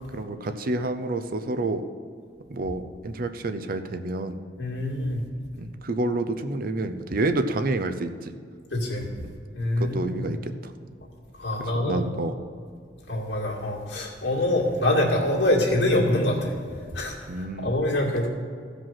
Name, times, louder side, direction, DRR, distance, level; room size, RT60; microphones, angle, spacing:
voice 1, 0.1-1.8 2.5-4.4 5.6-8.3 9.2-9.3 9.8-10.7 11.7-12.3 17.3-17.7, right 2 dB, 55° right, 9 dB, 0.6 m, -29 dB
voice 2, 4.6-5.2 8.7-9.1 9.5-10.3 11.4-12.0 13.1-16.5 16.9-18.3, left 1 dB, 90° left, -2 dB, 2.2 m, -25 dB
15.0 x 5.1 x 5.7 m, 2.2 s
head